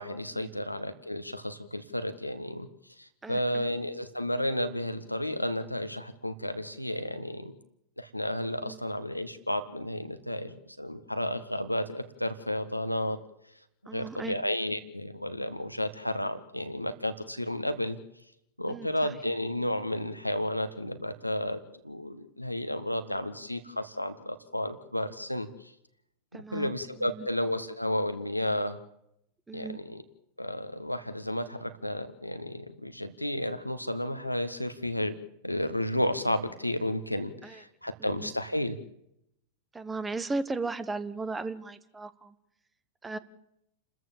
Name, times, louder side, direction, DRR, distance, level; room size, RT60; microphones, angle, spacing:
voice 1, 0.0-2.7 3.0-7.5 8.0-13.2 13.9-18.0 18.6-25.7 26.3-28.8 29.5-30.0 30.4-35.2 35.4-38.8, left 1 dB, 90° left, 10 dB, 1.5 m, -32 dB
voice 2, 3.2-3.7 8.6-8.8 13.9-14.4 18.7-18.9 26.3-26.7 27.0-27.3 29.5-29.8 37.4-37.6 38.0-38.3 39.7-42.3 43.0-43.2, right 3 dB, 15° right, 14 dB, 1.4 m, -36 dB
29.5 x 14.0 x 7.4 m, 0.79 s
figure-of-eight pair, 90°, 0 cm